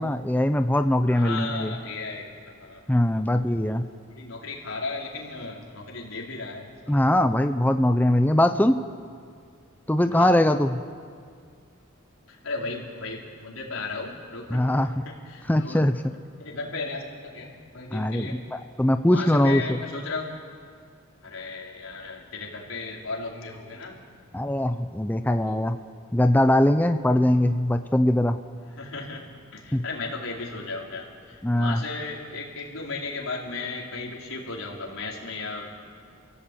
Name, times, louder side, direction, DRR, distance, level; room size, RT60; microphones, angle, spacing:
voice 1, 0.0-1.7 2.9-3.9 6.9-8.8 9.9-10.8 14.5-14.9 15.5-16.1 17.9-18.3 18.8-19.8 24.3-25.8 26.1-28.4 29.7-29.8 31.4-31.8, left 1 dB, 10° left, 8 dB, 0.6 m, -21 dB
voice 2, 1.1-3.8 4.1-7.1 10.1-10.3 12.3-15.8 16.4-18.4 19.1-20.3 21.2-24.0 25.4-25.6 28.7-29.3 29.5-35.8, left 3 dB, 85° left, -2 dB, 4.5 m, -35 dB
28.5 x 17.0 x 8.6 m, 2.2 s
head